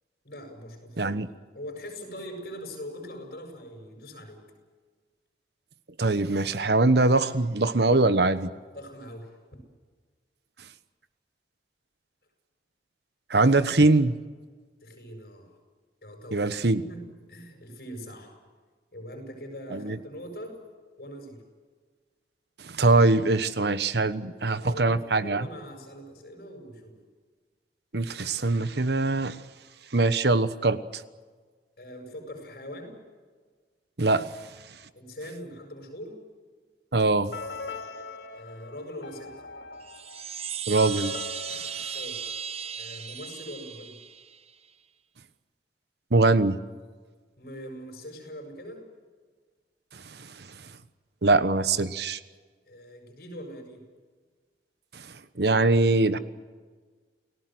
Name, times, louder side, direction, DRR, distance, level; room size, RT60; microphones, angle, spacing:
voice 1, 0.2-1.2 1.5-4.4 8.7-9.4 14.8-15.5 16.0-16.5 16.8-17.0 17.3-18.3 18.9-20.6 21.0-21.4 24.2-27.0 31.8-33.0 34.9-36.2 38.3-39.3 41.9-42.3 42.8-44.0 47.4-48.8 52.7-53.8, equal, 60° left, 4 dB, 7.6 m, -42 dB
voice 2, 1.0-1.3 6.0-8.5 13.3-14.2 16.3-16.8 19.7-20.0 22.6-25.5 27.9-29.4 29.9-30.8 34.0-34.3 36.9-37.3 40.7-41.1 46.1-46.6 49.9-50.3 51.2-52.2 54.9-55.0 55.4-56.2, right 2 dB, 70° right, 13 dB, 1.2 m, -22 dB
sound 1, 37.3-43.1, left 3 dB, 80° left, 2.6 m, -41 dB
Chime, 39.8-44.5, right 7 dB, 35° right, 1.0 m, -36 dB
29.5 x 18.5 x 7.9 m, 1.5 s
head